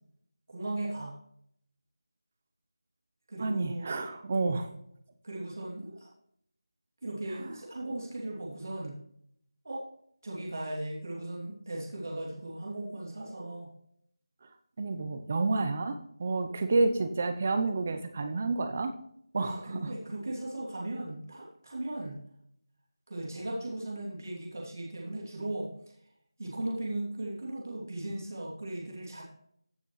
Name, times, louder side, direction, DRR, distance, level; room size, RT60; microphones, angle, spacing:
voice 1, 0.5-1.2 3.3-3.9 5.2-6.1 7.0-9.0 9.6-9.8 10.2-13.7 19.4-22.2 23.1-25.7 26.0-26.1 26.4-29.2, right 1 dB, 40° right, -3 dB, 2.7 m, -37 dB
voice 2, 3.4-4.7 7.4-7.5 14.8-19.0 19.3-19.9, right 3 dB, 15° right, 9 dB, 0.6 m, -29 dB
15.5 x 6.1 x 3.1 m, 0.70 s
figure-of-eight pair, 180°, 2 cm